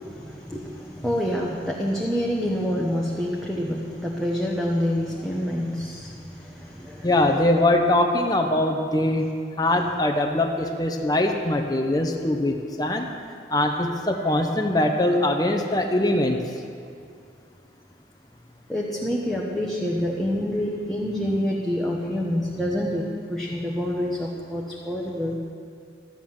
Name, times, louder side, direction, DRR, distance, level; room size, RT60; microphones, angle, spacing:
voice 1, 0.0-7.1 14.5-14.6 18.7-25.4, equal, ahead, -4 dB, 1.1 m, -27 dB
voice 2, 7.0-9.3 9.6-13.1 13.5-16.4 20.0-20.1, left 1 dB, 20° left, 2 dB, 0.8 m, -22 dB
13.5 x 9.8 x 7.3 m, 2.3 s
head